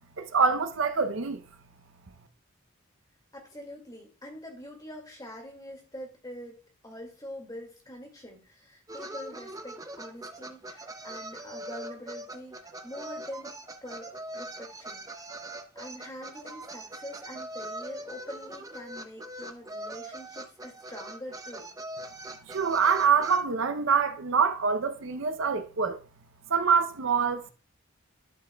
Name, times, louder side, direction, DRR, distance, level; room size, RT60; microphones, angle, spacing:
voice 1, 0.2-1.4 22.4-26.0 26.5-27.5, right 6 dB, 60° right, 0.6 m, -25 dB
voice 2, 3.3-12.6 12.8-15.0 15.8-21.7, equal, 20° left, 2.1 m, -44 dB
sound 1, 8.9-23.4, right 1 dB, 15° right, 0.5 m, -42 dB
12.0 x 6.1 x 2.3 m
head